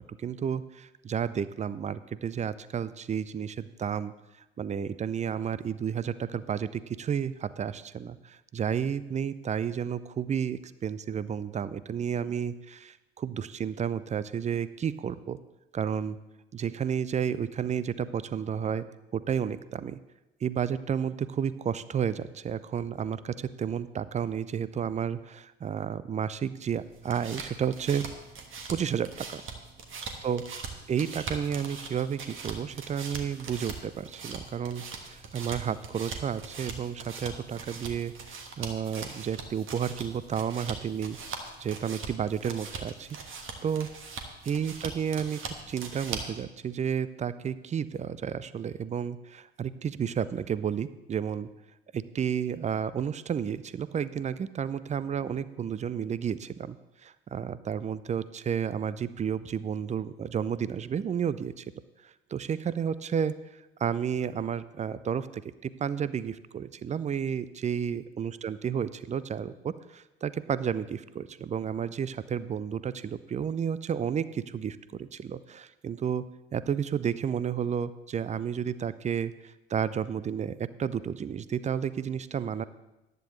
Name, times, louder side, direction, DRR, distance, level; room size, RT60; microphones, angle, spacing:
voice 1, 0.1-4.1 4.6-15.4 15.7-16.2 16.5-18.9 19.1-20.0 20.4-28.0 28.7-29.4 30.2-30.4 30.9-41.2 41.6-43.1 43.6-43.9 44.5-45.4 45.7-51.5 51.9-61.7 62.0-63.3 63.8-76.2 76.5-82.6, right 8 dB, 20° right, 16 dB, 0.5 m, -31 dB
sound 1, 26.8-46.4, right 4 dB, 40° right, 1.6 m, -41 dB
14.5 x 10.5 x 3.2 m, 0.98 s
figure-of-eight pair, 60°, 32 cm